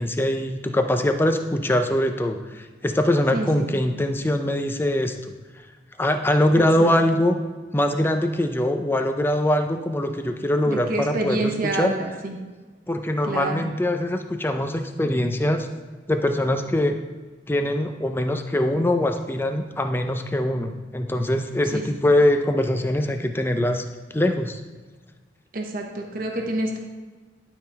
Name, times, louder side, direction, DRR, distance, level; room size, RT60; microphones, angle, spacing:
voice 1, 0.0-5.1 6.0-7.4 7.7-11.9 12.9-15.7 16.1-16.9 17.5-23.8 24.1-24.6, left 1 dB, 10° left, 6 dB, 0.5 m, -22 dB
voice 2, 3.3-3.7 6.5-6.9 10.7-12.4 13.3-13.6 21.7-21.8 25.5-26.8, right 2 dB, 50° right, 1 dB, 0.8 m, -28 dB
11.0 x 3.9 x 4.2 m, 1.4 s
head